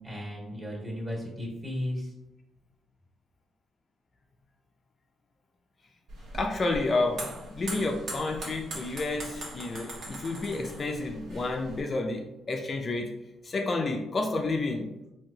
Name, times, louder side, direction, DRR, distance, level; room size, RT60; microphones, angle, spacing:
voice 1, 0.0-2.1, left 1 dB, 25° right, -2 dB, 1.4 m, -35 dB
sound 1, 6.1-11.8, right 2 dB, 70° right, 1.0 m, -41 dB
voice 2, 6.3-13.1 13.4-14.9, left 2 dB, 40° left, 2 dB, 0.4 m, -30 dB
3.7 x 2.8 x 2.7 m, 0.92 s
cardioid pair, 90°, 0 cm